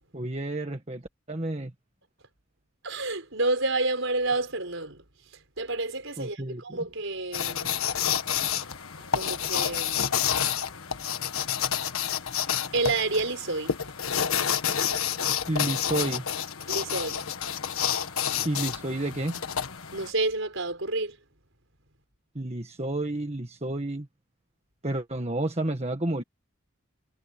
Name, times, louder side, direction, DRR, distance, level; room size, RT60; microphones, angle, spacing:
voice 1, 0.1-1.0 1.3-1.7 6.2-6.6 15.5-16.3 18.4-19.4 22.3-24.1 24.8-26.2, right 2 dB, 30° right, 1.6 m, -30 dB
voice 2, 2.8-5.0 5.6-7.8 9.1-10.2 12.5-13.8 16.7-17.2 19.9-21.2, right 2 dB, 65° right, 5.6 m, -29 dB
sound 1, 7.3-20.1, left 8 dB, 80° left, 1.5 m, -29 dB
head